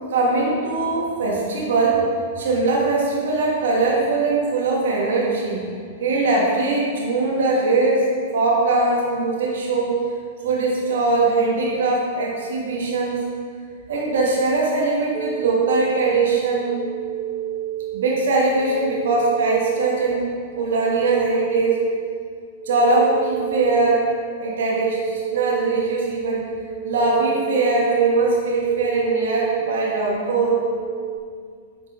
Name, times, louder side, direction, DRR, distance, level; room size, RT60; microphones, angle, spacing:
voice 1, 0.1-2.0 2.3-5.7 6.0-10.1 10.4-13.2 13.9-16.8 17.9-20.3 20.6-21.8 22.6-24.0 24.4-26.5 26.8-30.6, right 3 dB, 70° right, -3 dB, 1.5 m, -21 dB
sound 1, 15.1-31.2, right 11 dB, 20° right, 0.5 m, -31 dB
8.7 x 4.5 x 2.7 m, 2.1 s
hypercardioid pair, 105°, 0 cm